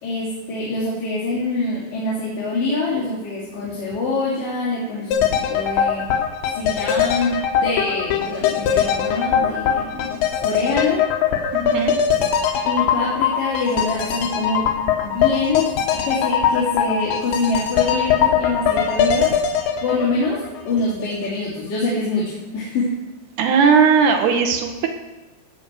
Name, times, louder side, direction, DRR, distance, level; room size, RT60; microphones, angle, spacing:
voice 1, 0.0-6.1 6.5-11.1 12.6-14.7 15.0-19.3 19.8-23.0, left 3 dB, 50° left, -9 dB, 4.6 m, -25 dB
sound 1, 5.1-21.0 21.3-21.4, left 8 dB, 75° left, 3.4 m, -21 dB
voice 2, 11.5-11.9 23.4-24.9, right 6 dB, 70° right, 4 dB, 2.9 m, -17 dB
17.0 x 5.7 x 7.8 m, 1.1 s
omnidirectional pair, 5.4 m